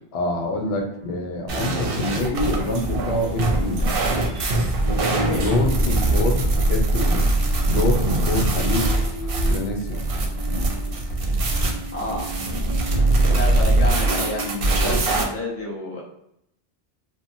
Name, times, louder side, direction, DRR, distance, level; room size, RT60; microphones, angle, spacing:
voice 1, 0.1-3.9 5.4-7.3 7.7-8.9 9.5-10.1, left 2 dB, 85° left, 2 dB, 0.8 m, -26 dB
sound 1, 0.6-15.0, left 1 dB, 55° left, 0.7 m, -37 dB
sound 2, 1.5-15.2, right 2 dB, 65° right, 0.7 m, -22 dB
voice 2, 5.3-6.1 11.9-12.4 13.1-16.0, left 2 dB, 20° left, -3 dB, 0.5 m, -30 dB
2.8 x 2.2 x 2.6 m, 0.78 s
omnidirectional pair, 1.0 m